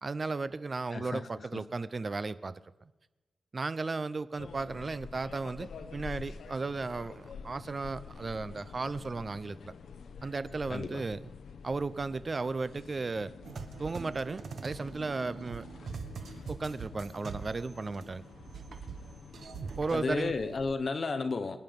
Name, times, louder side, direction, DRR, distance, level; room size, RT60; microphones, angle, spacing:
voice 1, 0.0-2.9 3.5-9.7 10.2-11.3 11.6-13.3 13.8-15.6 16.5-18.2 19.8-20.3, right 3 dB, 30° right, 15 dB, 0.5 m, -35 dB
voice 2, 0.9-1.7 10.7-11.0 19.9-21.6, left 4 dB, 40° left, 9 dB, 1.1 m, -33 dB
sound 1, 4.4-20.7, left 5 dB, 75° left, 0.9 m, -48 dB
sound 2, 13.4-18.1 18.3-20.0, right 5 dB, 60° right, 1.4 m, -43 dB
24.5 x 9.7 x 5.3 m, 1.1 s
wide cardioid pair, 150°, 0 cm